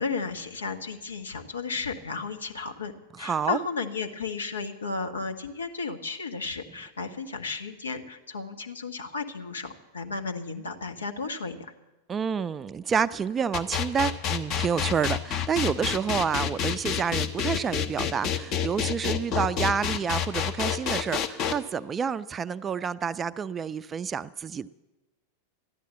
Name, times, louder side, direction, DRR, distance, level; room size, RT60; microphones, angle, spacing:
voice 1, 0.0-11.7, left 4 dB, 70° left, 6 dB, 1.3 m, -34 dB
voice 2, 3.1-3.6 12.1-24.7, right 6 dB, 20° right, 15 dB, 0.4 m, -29 dB
sound 1, 13.5-21.5, left 8 dB, 35° left, 1.0 m, -28 dB
13.5 x 10.5 x 8.2 m, 1.0 s
figure-of-eight pair, 90°, 0 cm